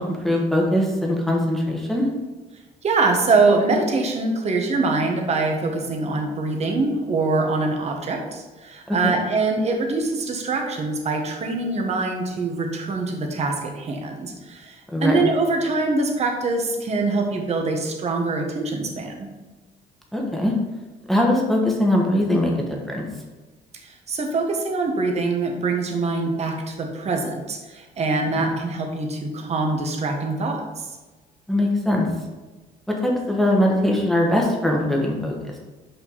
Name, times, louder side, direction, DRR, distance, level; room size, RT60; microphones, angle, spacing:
voice 1, 0.0-2.1 8.9-9.1 14.9-15.2 20.1-20.5 21.1-22.5 22.9-23.0 31.5-32.1 32.9-35.3, left 1 dB, ahead, -1 dB, 1.3 m, -21 dB
voice 2, 2.8-14.8 15.0-19.3 23.8-30.9, right 3 dB, 40° right, 3 dB, 1.3 m, -24 dB
5.7 x 5.3 x 4.0 m, 1.2 s
cardioid pair, 110°, 17 cm